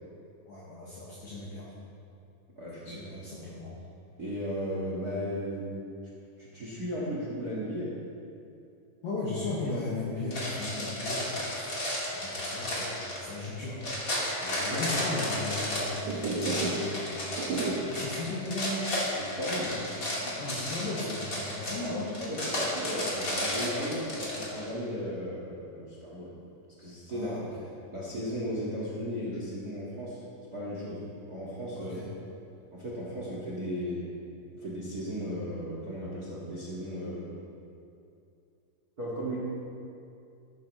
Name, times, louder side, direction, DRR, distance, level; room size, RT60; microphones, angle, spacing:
voice 1, 0.4-1.7 2.8-3.7 9.0-11.7 12.1-13.8 14.4-18.9 19.7-20.0 20.3-22.2 27.1-27.7 31.8-32.1, left 2 dB, 60° left, -8 dB, 3.1 m, -37 dB
voice 2, 2.5-3.0 3.4-3.5 4.2-5.7 6.4-7.9 12.1-12.6 14.4-14.8 19.2-19.7 21.8-26.3 26.8-27.5 27.9-30.2 30.5-31.0 31.3-32.0 32.7-34.0 34.5-37.3 39.0-39.4, equal, 45° right, -6 dB, 1.2 m, -36 dB
sound 1, 10.3-24.7, left 1 dB, 30° left, 1.7 m, -33 dB
sound 2, 15.9-17.0 17.2-18.1 18.5-18.6 19.0-19.1 19.6-21.0 21.3-22.0, right 3 dB, 65° right, 2.1 m, -34 dB
14.0 x 13.5 x 3.3 m, 2.6 s
omnidirectional pair, 4.9 m